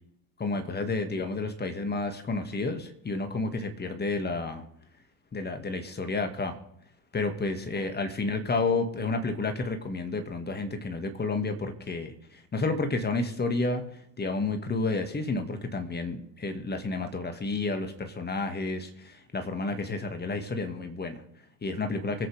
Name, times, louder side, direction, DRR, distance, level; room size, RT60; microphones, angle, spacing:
voice 1, 0.4-4.7 5.3-6.6 7.1-22.3, left 3 dB, 20° left, 6 dB, 1.8 m, -31 dB
24.5 x 8.4 x 3.4 m, 0.73 s
figure-of-eight pair, 65°, 50 cm